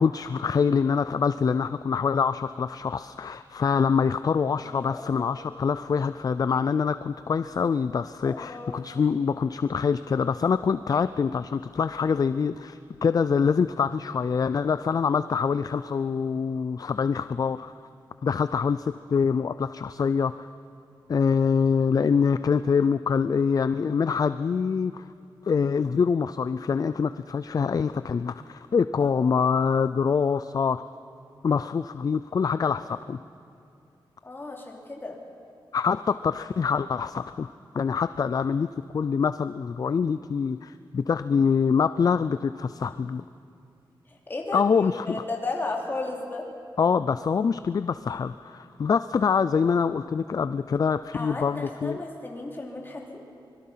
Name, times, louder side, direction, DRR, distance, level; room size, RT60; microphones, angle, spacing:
voice 1, 0.0-17.7 18.2-20.5 21.1-25.0 25.4-30.8 31.4-33.2 35.7-43.2 44.5-45.2 46.8-52.0, left 6 dB, 45° left, 13 dB, 0.4 m, -25 dB
voice 2, 4.6-5.4 8.2-8.8 29.0-29.2 34.2-35.2 44.1-46.4 51.1-53.2, left 2 dB, 25° left, -1 dB, 2.9 m, -35 dB
25.0 x 21.5 x 5.7 m, 2.6 s
wide cardioid pair, 145°, 9 cm